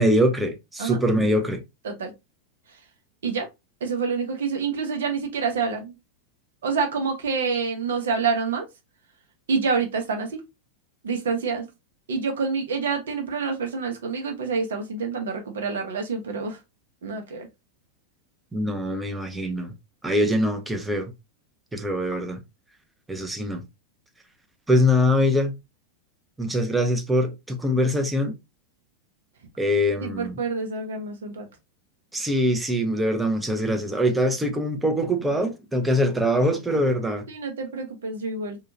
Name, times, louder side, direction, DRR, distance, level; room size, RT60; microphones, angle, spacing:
voice 1, 0.0-1.6 18.5-19.7 20.0-21.1 21.7-22.4 23.1-23.6 24.7-25.5 26.4-28.4 29.6-30.4 32.1-37.2, equal, 10° right, 0.6 m, -23 dB
voice 2, 3.8-5.9 6.6-8.6 9.5-10.4 11.0-11.7 12.1-16.6 17.0-17.5 30.0-31.5 37.3-38.6, right 5 dB, 65° right, 0.7 m, -27 dB
2.7 x 2.3 x 2.6 m
figure-of-eight pair, 90°, 0 cm